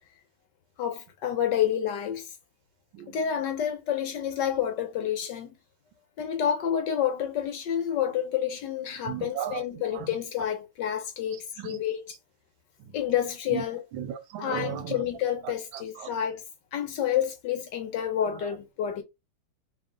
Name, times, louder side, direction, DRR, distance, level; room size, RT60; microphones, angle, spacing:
voice 1, 0.8-2.3 3.1-5.5 6.2-12.1 12.9-13.8 14.4-16.4 16.7-19.0, left 9 dB, 70° left, 1.1 m, -29 dB
voice 2, 9.1-9.6 9.9-10.1 11.6-11.8 13.5-13.6 14.0-15.0 15.4-16.1, right 10 dB, 80° right, 1.3 m, -35 dB
3.1 x 2.9 x 3.7 m
omnidirectional pair, 2.3 m